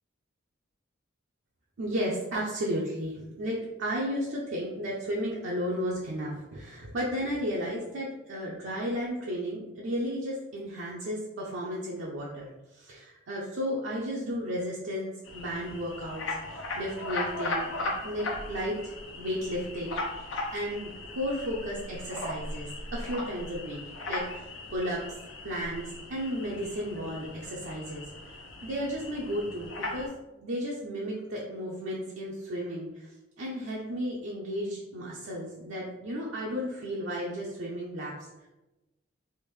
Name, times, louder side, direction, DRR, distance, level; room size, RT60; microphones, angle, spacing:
voice 1, 1.8-23.8 24.1-25.0 25.4-28.1 28.6-30.1 30.4-33.1 33.4-38.1, equal, 70° right, -4 dB, 0.6 m, -34 dB
sound 1, 15.2-30.1, left 2 dB, 70° left, 0.6 m, -38 dB
3.5 x 2.5 x 3.1 m, 1.0 s
head